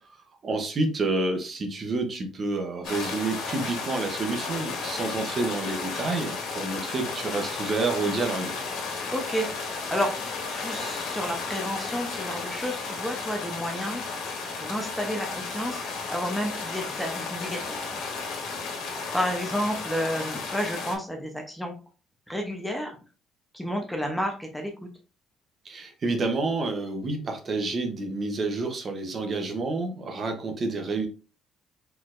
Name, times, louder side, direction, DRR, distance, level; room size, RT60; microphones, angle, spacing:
voice 1, 0.4-8.5 25.6-31.1, right 3 dB, 30° right, 5 dB, 0.8 m, -29 dB
sound 1, 2.8-21.0, left 4 dB, 80° left, 1.6 m, -33 dB
voice 2, 9.1-10.1 10.6-14.0 14.6-15.8 16.1-18.0 19.1-21.7 22.3-23.0 23.5-24.7, equal, 5° left, 2 dB, 0.7 m, -31 dB
4.5 x 4.1 x 2.5 m, 0.35 s
cardioid pair, 160°, 0 cm